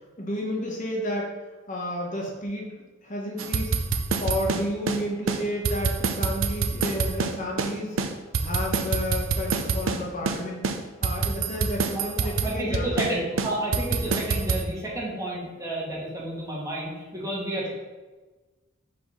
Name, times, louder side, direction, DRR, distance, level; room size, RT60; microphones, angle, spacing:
voice 1, 0.2-1.3 1.7-2.8 3.0-3.7 4.2-8.0 8.4-10.6 11.0-13.3 14.0-14.1, left 1 dB, 40° left, -1 dB, 1.0 m, -31 dB
sound 1, 3.4-5.0 5.3-5.4 5.7-7.7 8.0-10.0 10.3-10.4 10.6-13.1 13.4-14.6, right 4 dB, 75° right, 0.6 m, -26 dB
voice 2, 11.9-17.7, right 1 dB, 15° right, -5 dB, 1.6 m, -31 dB
5.6 x 4.1 x 5.4 m, 1.2 s
head